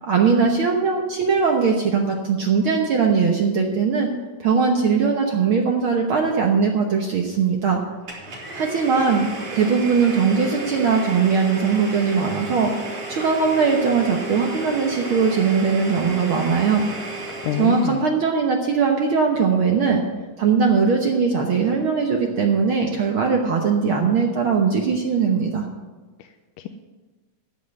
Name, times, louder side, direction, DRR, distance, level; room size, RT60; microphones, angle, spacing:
voice 1, 0.0-4.1 4.4-7.8 8.5-9.3 9.5-12.7 13.1-16.9 17.6-20.0 20.4-25.7, right 5 dB, 65° right, 1 dB, 1.3 m, -20 dB
Domestic sounds home sounds, 8.1-18.0, right 2 dB, 50° right, 4.9 m, -33 dB
voice 2, 17.3-18.0 26.2-26.7, left 10 dB, 90° left, 7 dB, 2.2 m, -28 dB
14.5 x 5.4 x 9.3 m, 1.3 s
omnidirectional pair, 3.7 m